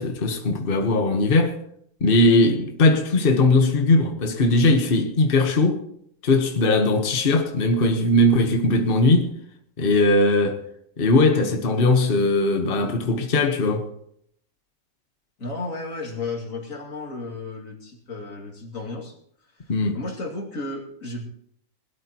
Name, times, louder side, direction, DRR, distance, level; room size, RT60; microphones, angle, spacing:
voice 1, 0.0-1.6 2.0-5.8 6.2-9.3 9.8-10.6 11.0-13.8 19.7-20.0, left 2 dB, 45° left, 1.4 m, -19 dB
voice 2, 15.4-19.2 19.5-21.2, left 3 dB, 85° left, 2.9 m, -33 dB
20.5 x 13.0 x 3.0 m
omnidirectional pair, 1.4 m